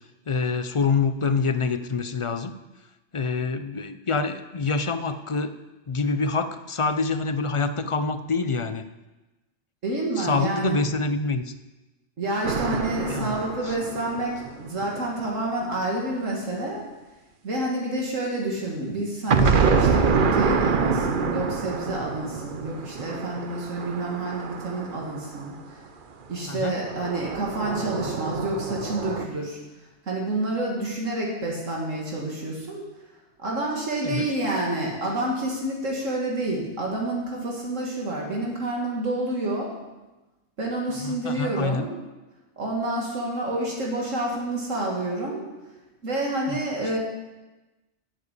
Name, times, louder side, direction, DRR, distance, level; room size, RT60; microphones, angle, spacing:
voice 1, 0.3-2.5 3.1-5.6 5.9-8.8 10.2-11.5 13.1-13.3 13.6-13.8 26.5-26.8 34.0-34.3 41.0-41.9 46.5-46.6, left 4 dB, 45° left, 10 dB, 0.4 m, -26 dB
voice 2, 9.8-10.8 12.2-16.8 17.4-25.8 26.3-29.6 30.0-32.8 33.4-39.7 40.6-41.9 42.6-45.5 46.0-47.0, right 2 dB, 80° right, -2 dB, 2.5 m, -28 dB
sound 1, 12.4-15.3 19.3-25.6 26.8-29.3, right 5 dB, 45° right, 0.9 m, -26 dB
12.0 x 7.6 x 8.2 m, 1.1 s
omnidirectional pair, 1.3 m